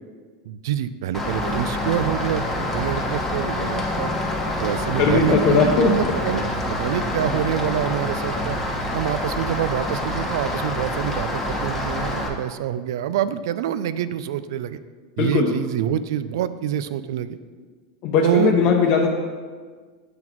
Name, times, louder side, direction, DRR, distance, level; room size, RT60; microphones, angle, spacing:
voice 1, 0.4-4.1 4.6-6.4 6.8-8.6 8.9-14.8 15.2-17.4 18.2-18.5, right 10 dB, 75° right, 14 dB, 0.3 m, -26 dB
Rain, 1.1-12.3, left 1 dB, 10° left, 1.2 m, -26 dB
voice 2, 5.0-5.9 15.2-15.5 18.0-19.1, left 5 dB, 50° left, 0 dB, 0.7 m, -18 dB
7.7 x 4.0 x 4.5 m, 1.5 s
supercardioid pair, 115°, 2 cm